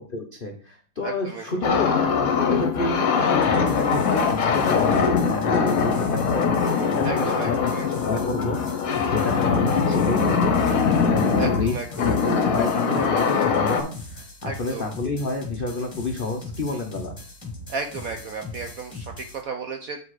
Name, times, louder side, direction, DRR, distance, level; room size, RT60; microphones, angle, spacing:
voice 1, 0.0-10.8 11.1-17.2, left 3 dB, 75° left, 2 dB, 0.5 m, -29 dB
voice 2, 1.0-1.7 7.0-8.1 11.4-12.4 14.4-14.9 17.7-20.0, right 4 dB, 70° right, 5 dB, 0.8 m, -34 dB
sound 1, 1.6-13.8, left 5 dB, 55° left, 1.1 m, -22 dB
sound 2, 3.4-19.4, left 2 dB, 15° left, 1.1 m, -39 dB
8.1 x 4.1 x 4.7 m, 0.43 s
omnidirectional pair, 2.2 m